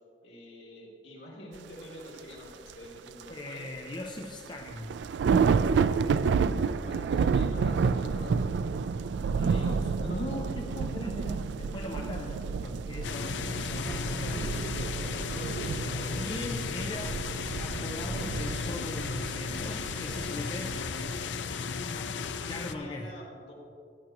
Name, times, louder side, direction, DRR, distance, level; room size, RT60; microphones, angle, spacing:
voice 1, 0.2-3.7 6.8-8.4 9.4-10.7 14.2-16.6 16.9-17.0 20.3-20.4 21.7-23.5, equal, 65° left, -5 dB, 2.9 m, -46 dB
sound 1, 2.2-2.3 2.7-2.8 4.2-4.3 4.6-21.2, right 5 dB, 75° right, 0.3 m, -30 dB
voice 2, 3.3-5.0 9.2-14.5 16.2-17.2 17.6-20.8 22.5-23.1, left 1 dB, 25° left, 1 dB, 0.5 m, -39 dB
sound 2, 13.0-22.8, left 5 dB, 90° left, 0.5 m, -35 dB
16.0 x 9.2 x 3.0 m, 2.5 s
head